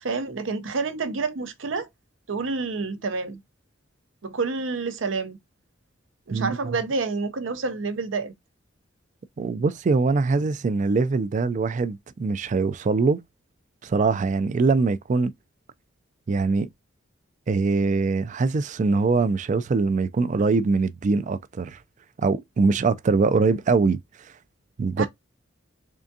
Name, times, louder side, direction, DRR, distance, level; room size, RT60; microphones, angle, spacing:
voice 1, 0.0-1.9 2.3-3.4 4.2-5.4 6.3-8.3 25.0-25.1, right 4 dB, 75° right, 0.7 m, -28 dB
voice 2, 9.4-13.2 13.8-15.3 16.3-16.7 17.5-21.8 22.2-24.0 24.8-25.1, right 4 dB, 40° right, 0.3 m, -22 dB
3.7 x 3.4 x 2.6 m
head